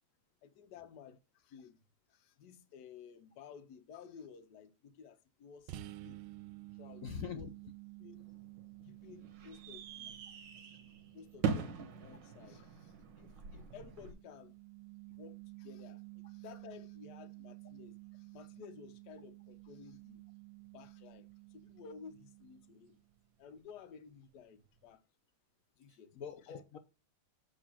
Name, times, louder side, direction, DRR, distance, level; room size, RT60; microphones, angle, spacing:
voice 1, 0.4-1.8 2.1-6.2 6.7-7.5 8.0-8.3 8.8-10.2 10.6-10.7 11.1-11.7 12.0-14.6 15.2-20.2 20.7-23.0 23.4-25.0 25.8-26.1 26.4-26.6, left 7 dB, 60° left, 1.4 m, -54 dB
sound 1, 5.7-23.2, right 18 dB, 85° right, 1.4 m, -53 dB
voice 2, 7.0-7.5 8.8-8.9 15.1-15.2 25.9-26.8, left 7 dB, 80° left, 0.7 m, -44 dB
sound 2, 8.1-14.1, right 6 dB, 65° right, 1.6 m, -42 dB
8.0 x 3.4 x 5.8 m
omnidirectional pair, 2.2 m